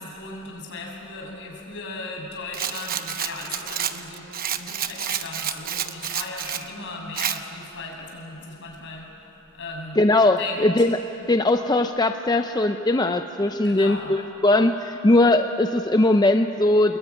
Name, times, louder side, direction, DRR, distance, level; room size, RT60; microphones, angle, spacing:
voice 1, 0.0-9.1 9.5-10.0 10.4-10.7 13.6-14.1, left 3 dB, 65° left, -1 dB, 6.5 m, -36 dB
Rattle, 2.5-6.7 7.2-7.4, right 9 dB, 45° right, 0.9 m, -29 dB
voice 2, 10.0-11.0 11.3-17.0, left 2 dB, 20° left, 7 dB, 0.6 m, -20 dB
25.0 x 21.0 x 9.5 m, 3.0 s
head